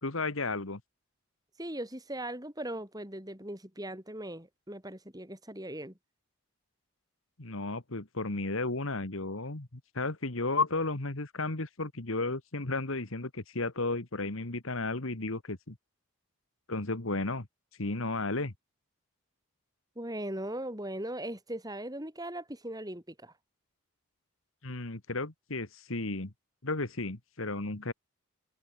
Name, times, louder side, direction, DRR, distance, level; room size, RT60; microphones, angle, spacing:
voice 1, 0.0-0.8 7.4-15.8 16.7-17.5 17.8-18.5 24.6-26.3 26.6-27.9, left 3 dB, 65° left, 1.9 m, -33 dB
voice 2, 1.6-6.0 20.0-23.3, right 1 dB, 15° right, 7.2 m, -39 dB
head